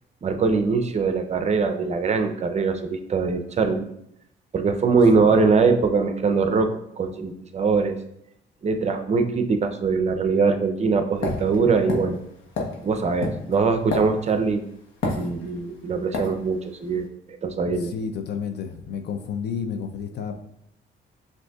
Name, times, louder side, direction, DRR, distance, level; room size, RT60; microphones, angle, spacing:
voice 1, 0.2-3.9 4.5-8.0 8.6-12.2 12.8-14.6 15.2-17.1 17.4-17.9, right 4 dB, 35° right, 7 dB, 0.5 m, -22 dB
sound 1, 11.2-14.5 15.0-15.7 16.1-16.3, left 3 dB, 80° left, 1.0 m, -28 dB
voice 2, 17.7-20.4, left 6 dB, 60° left, 7 dB, 0.5 m, -31 dB
6.1 x 2.6 x 2.3 m, 0.74 s
cardioid pair, 90°, 20 cm